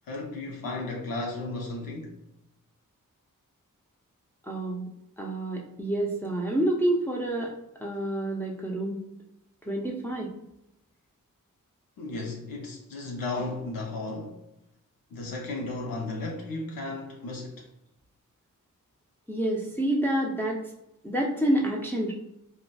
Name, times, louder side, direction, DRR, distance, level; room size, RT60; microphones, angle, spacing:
voice 1, 0.1-2.1 12.0-14.4 15.1-17.7, left 2 dB, 90° left, 0.6 m, -34 dB
voice 2, 4.5-4.9 5.2-7.5 7.8-9.0 9.7-10.3 19.3-20.6 21.0-22.1, right 1 dB, 5° left, 0.5 m, -28 dB
3.8 x 2.1 x 2.2 m
cardioid pair, 55°, 33 cm